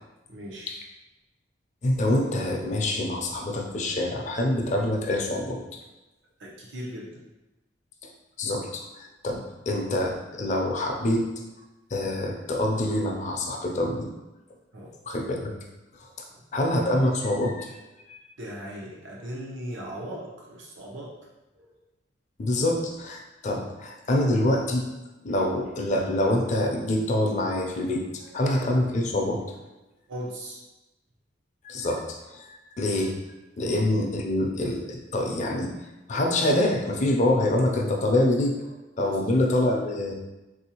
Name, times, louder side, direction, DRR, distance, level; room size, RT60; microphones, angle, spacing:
voice 1, 0.3-0.7 6.4-7.2 14.7-14.9 16.3-16.4 18.4-21.2 21.6-21.7 28.2-28.5 30.1-30.6 38.9-39.4, equal, 85° right, -4 dB, 0.8 m, -38 dB
voice 2, 1.8-5.6 8.4-11.3 11.9-14.1 15.1-15.5 16.0-16.1 16.5-17.7 18.1-18.2 22.4-24.9 25.2-28.0 28.3-29.4 31.6-33.1 33.6-35.7 36.1-38.6 39.0-40.1, left 1 dB, 40° left, 1 dB, 0.5 m, -25 dB
3.5 x 2.6 x 2.8 m, 1.0 s
head